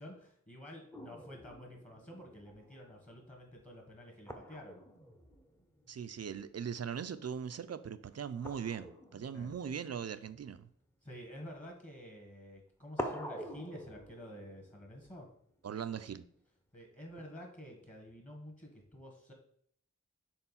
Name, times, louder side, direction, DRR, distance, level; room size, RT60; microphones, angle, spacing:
voice 1, 0.0-4.8 9.3-9.5 11.0-15.3 16.7-19.3, equal, 25° left, 1.4 m, -50 dB
sound 1, 0.9-6.8 7.1-7.5 8.4-11.6 12.5-12.6 13.0-16.2 17.2-18.1, equal, 10° left, 0.7 m, -48 dB
voice 2, 5.9-10.7 15.6-16.2, right 7 dB, 55° right, 0.4 m, -40 dB
4.5 x 3.8 x 5.6 m
wide cardioid pair, 75°, 30 cm